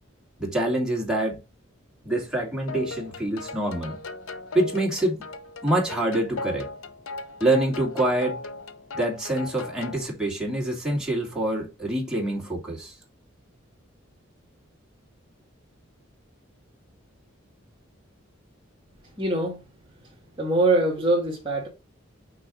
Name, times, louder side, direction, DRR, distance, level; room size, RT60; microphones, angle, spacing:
voice 1, 0.4-1.4 2.0-4.0 4.5-5.2 5.6-6.7 7.4-8.4 8.9-13.0, right 1 dB, 5° right, 2.5 m, -26 dB
sound 1, 2.7-10.1, left 3 dB, 80° left, 0.9 m, -38 dB
voice 2, 19.2-19.6 20.4-21.7, right 2 dB, 25° right, 1.8 m, -23 dB
6.1 x 4.6 x 3.8 m
head